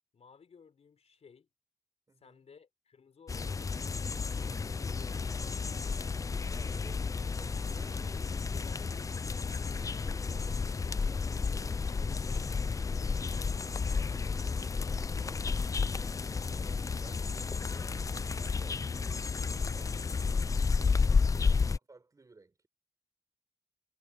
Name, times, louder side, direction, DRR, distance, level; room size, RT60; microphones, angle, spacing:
voice 1, 0.1-1.5 2.2-5.8 8.0-10.5, left 6 dB, 50° left, 4.7 m, -58 dB
voice 2, 2.1-2.4 6.5-8.0 10.0-20.5 21.1-22.7, right 3 dB, 25° right, 5.7 m, -58 dB
sound 1, 3.3-21.8, left 5 dB, 25° left, 0.4 m, -32 dB
wide cardioid pair, 160°, 14 cm